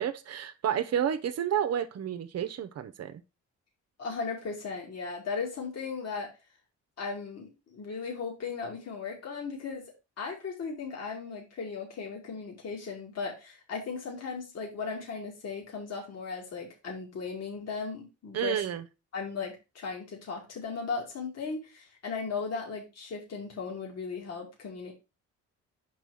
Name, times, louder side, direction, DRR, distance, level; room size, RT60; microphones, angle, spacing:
voice 1, 0.0-3.2 18.3-18.8, right 9 dB, 55° right, 0.8 m, -30 dB
voice 2, 4.0-6.3 7.0-9.9 10.2-18.6 19.1-24.9, left 5 dB, 55° left, 2.3 m, -37 dB
5.5 x 4.6 x 4.7 m
cardioid pair, 90°, 30 cm